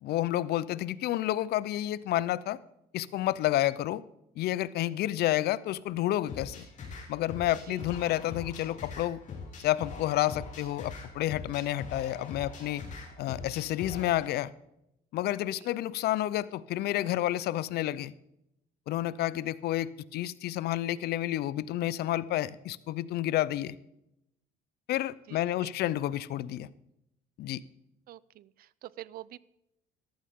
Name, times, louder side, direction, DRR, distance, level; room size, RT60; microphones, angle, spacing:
voice 1, 0.0-2.6 2.9-4.0 4.4-6.7 7.1-9.2 9.6-12.8 13.2-14.5 15.1-18.1 18.9-23.8 24.9-26.7 27.4-27.6, left 14 dB, 70° left, 19 dB, 0.6 m, -30 dB
sound 1, 6.3-14.3, left 4 dB, 50° left, 4.0 m, -43 dB
voice 2, 25.3-25.7 28.1-29.4, right 14 dB, 60° right, 21 dB, 0.5 m, -47 dB
14.0 x 12.5 x 3.6 m, 0.83 s
cardioid pair, 110°, 17 cm